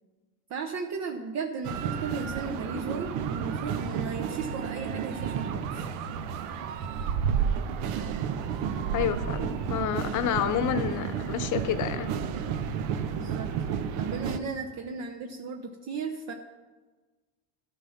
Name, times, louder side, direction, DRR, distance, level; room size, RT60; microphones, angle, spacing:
voice 1, 0.5-5.8 13.1-13.5 14.0-16.3, right 5 dB, 40° right, 3 dB, 0.9 m, -35 dB
sound 1, 1.6-14.4, right 7 dB, 70° right, 1.0 m, -31 dB
voice 2, 8.9-12.1, left 9 dB, 45° left, 12 dB, 0.9 m, -29 dB
12.5 x 5.8 x 5.7 m, 1.3 s
supercardioid pair, 100°, 41 cm